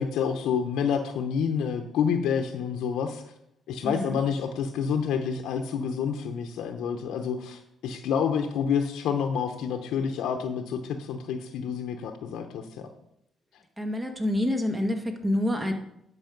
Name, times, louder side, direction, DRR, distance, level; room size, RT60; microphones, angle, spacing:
voice 1, 0.0-3.2 3.7-12.9, left 7 dB, 85° left, 5 dB, 0.8 m, -28 dB
voice 2, 3.8-4.2 13.8-15.7, left 1 dB, 15° right, 4 dB, 1.7 m, -27 dB
10.5 x 6.3 x 5.2 m, 0.77 s
cardioid pair, 90°, 0 cm